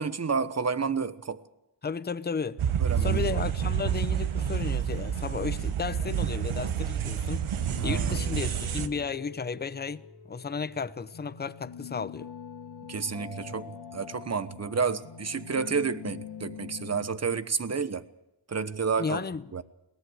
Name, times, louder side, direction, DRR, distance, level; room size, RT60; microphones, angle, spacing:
voice 1, 0.0-1.4 2.8-3.5 7.8-8.2 12.9-18.1 18.5-19.2 19.5-19.6, right 5 dB, 30° right, 1.1 m, -30 dB
voice 2, 1.8-2.6 3.0-7.6 7.8-10.0 10.3-12.3 19.0-19.4, left 5 dB, 20° left, 0.7 m, -33 dB
sound 1, 2.6-8.9, right 9 dB, 70° right, 1.2 m, -29 dB
sound 2, 5.4-17.1, left 7 dB, 75° left, 2.7 m, -45 dB
22.5 x 18.0 x 6.4 m
wide cardioid pair, 105°, 50 cm